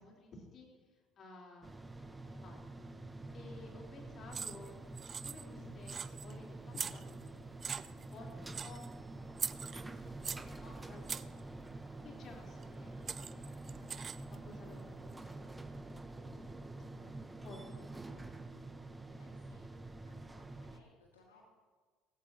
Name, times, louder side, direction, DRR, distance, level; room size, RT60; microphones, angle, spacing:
voice 1, 0.0-2.9 3.3-7.7 8.1-11.7 12.0-14.2 14.4-18.5, left 2 dB, 50° left, -1 dB, 4.0 m, -56 dB
sound 1, 1.6-20.8, right 2 dB, 15° right, 1.1 m, -47 dB
sound 2, 4.3-4.7 5.0-5.6 5.9-6.3 6.7-7.3 7.6-8.1 8.5-8.9 9.4-10.5 11.1-11.4 12.6-12.7 13.1-14.3, right 6 dB, 40° right, 0.5 m, -41 dB
sound 3, 6.7-14.5, right 1 dB, ahead, 5.0 m, -64 dB
voice 2, 19.1-21.4, left 2 dB, 90° left, -3 dB, 2.2 m, -67 dB
18.5 x 16.5 x 3.0 m, 1.5 s
hypercardioid pair, 60°, 0 cm